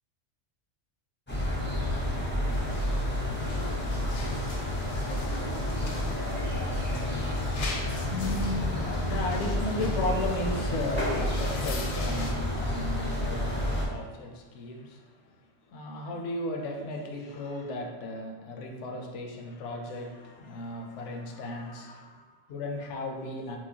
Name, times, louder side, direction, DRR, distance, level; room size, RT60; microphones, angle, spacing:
sound 1, 1.3-13.9, left 1 dB, 15° left, 0.5 m, -30 dB
sound 2, 2.5-12.3, left 2 dB, 60° left, 0.6 m, -42 dB
voice 1, 7.2-23.6, left 2 dB, 80° left, 1 dB, 0.9 m, -35 dB
4.5 x 2.1 x 2.7 m, 1.3 s
omnidirectional pair, 1.2 m